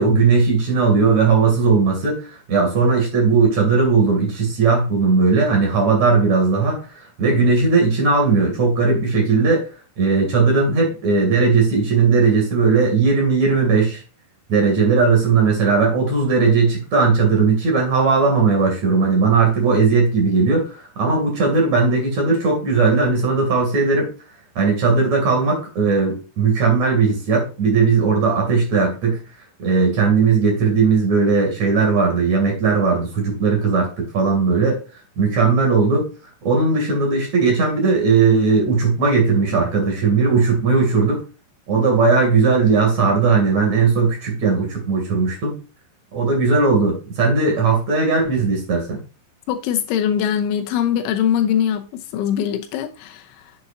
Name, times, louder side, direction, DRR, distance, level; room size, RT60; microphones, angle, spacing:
voice 1, 0.0-6.8 7.2-9.6 10.0-14.0 14.5-24.1 24.5-29.2 29.6-34.8 35.2-36.1 36.4-41.2 41.7-45.6 46.1-49.0, right 4 dB, 45° right, 3.2 m, -17 dB
voice 2, 49.5-53.3, left 9 dB, 90° left, 3.2 m, -22 dB
8.4 x 7.8 x 2.6 m
omnidirectional pair, 5.5 m